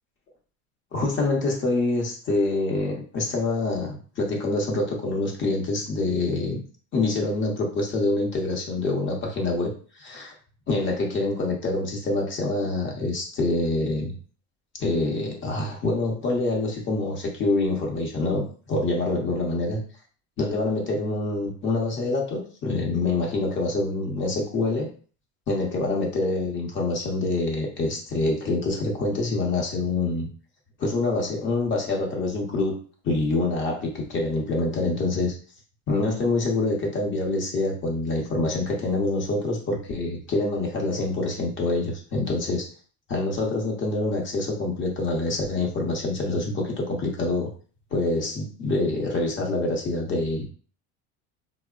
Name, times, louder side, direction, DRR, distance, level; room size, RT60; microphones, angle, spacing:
voice 1, 0.9-6.6 6.9-10.3 10.7-14.1 14.8-19.8 20.4-24.9 25.5-30.3 30.8-32.8 33.0-35.3 35.9-42.7 43.1-47.5 47.9-50.5, left 2 dB, 35° left, 0 dB, 0.8 m, -26 dB
3.3 x 2.1 x 2.3 m, 0.40 s
supercardioid pair, 130°, 36 cm